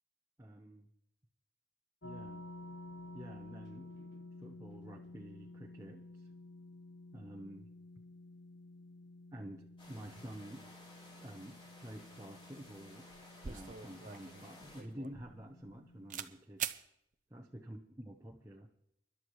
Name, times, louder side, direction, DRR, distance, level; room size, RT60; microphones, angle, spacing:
voice 1, 0.4-0.9 2.0-2.5 3.1-3.9 4.4-6.3 7.1-7.7 9.3-10.6 11.2-13.1 13.4-16.6 17.3-18.7, right 1 dB, 15° right, 0 dB, 0.9 m, -49 dB
sound 1, 2.0-16.1, left 2 dB, 75° left, 1.2 m, -53 dB
sound 2, 9.8-14.8, left 1 dB, 30° left, 4.6 m, -57 dB
sound 3, 13.1-15.8 16.1-16.3 16.6-16.8, right 9 dB, 45° right, 0.6 m, -43 dB
25.0 x 11.5 x 3.2 m, 0.76 s
head